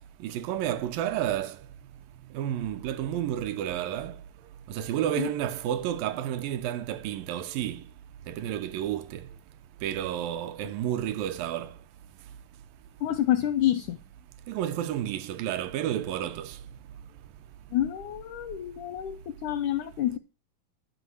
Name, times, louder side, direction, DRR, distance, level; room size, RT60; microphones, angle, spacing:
voice 1, 0.2-1.6 2.3-4.2 4.7-7.8 8.3-9.2 9.8-11.7 14.5-16.6, right 11 dB, 80° right, 2.2 m, -31 dB
voice 2, 13.0-14.0 17.7-19.2 19.4-20.2, left 12 dB, 80° left, 1.7 m, -27 dB
12.0 x 4.9 x 7.7 m
omnidirectional pair, 4.3 m